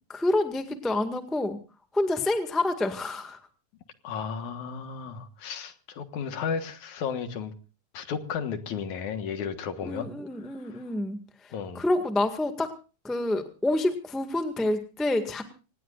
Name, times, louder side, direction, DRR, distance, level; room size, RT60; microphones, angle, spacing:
voice 1, 0.1-1.6 1.9-3.5 9.8-12.7 13.0-15.4, left 2 dB, ahead, 6 dB, 0.7 m, -28 dB
voice 2, 4.0-7.5 7.9-10.1 11.5-11.8, left 6 dB, 65° left, 8 dB, 2.7 m, -33 dB
25.5 x 19.5 x 2.5 m, 0.34 s
omnidirectional pair, 3.8 m